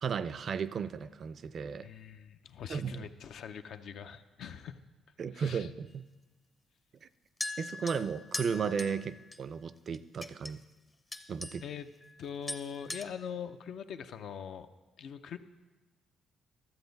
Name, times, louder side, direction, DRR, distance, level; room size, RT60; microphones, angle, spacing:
voice 1, 0.0-1.9 2.7-3.1 5.2-6.0 7.0-7.1 7.6-10.6 11.3-11.6, right 6 dB, 55° right, 15 dB, 0.3 m, -35 dB
voice 2, 1.8-4.8 5.3-5.7 11.6-11.9 12.2-14.7 15.0-15.4, left 7 dB, 70° left, 9 dB, 0.5 m, -42 dB
sound 1, 7.4-9.4 9.9-10.5 11.1-11.7 12.0-12.2 12.5-13.0, left 2 dB, 20° left, 0.6 m, -41 dB
12.0 x 7.7 x 4.0 m, 1.2 s
cardioid pair, 90°, 0 cm